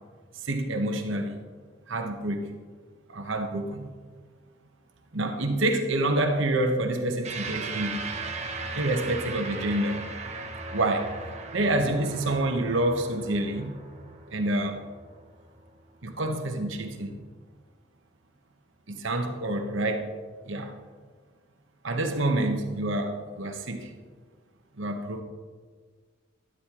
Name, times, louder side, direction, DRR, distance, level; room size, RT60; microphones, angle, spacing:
voice 1, 0.4-1.4 1.9-2.5 3.1-3.9 5.1-8.0 8.7-10.0 10.7-11.1 11.5-13.8 14.3-14.8 16.0-17.2 18.9-20.1 20.5-20.7 21.8-23.9 24.8-25.2, right 1 dB, 60° right, 4 dB, 1.1 m, -27 dB
sound 1, 7.2-15.9, right 3 dB, 30° right, 0.8 m, -38 dB
12.0 x 11.5 x 3.0 m, 1.5 s
head